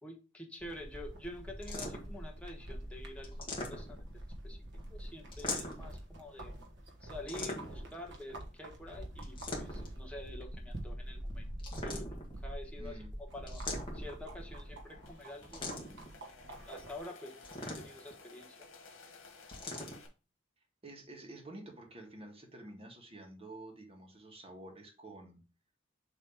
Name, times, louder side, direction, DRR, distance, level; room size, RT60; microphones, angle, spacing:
voice 1, 0.0-4.1 4.4-4.6 4.9-6.5 7.0-11.5 11.8-13.0 13.3-13.6 13.9-15.6 16.3-18.6, left 1 dB, 5° left, 0 dB, 1.3 m, -48 dB
sound 1, 0.6-17.0, right 1 dB, 60° right, 1.4 m, -45 dB
sound 2, 1.6-2.2 3.2-4.1 5.3-5.9 7.3-7.9 9.2-10.0 11.6-12.4 13.5-14.2 15.5-16.1 17.4-18.1 19.5-20.0, left 2 dB, 25° left, 1.7 m, -41 dB
voice 2, 12.8-13.1 20.8-25.4, right 2 dB, 30° right, 2 dB, 1.7 m, -50 dB
sound 3, 14.5-20.1, left 4 dB, 80° left, 1.9 m, -56 dB
7.0 x 3.3 x 4.9 m, 0.32 s
head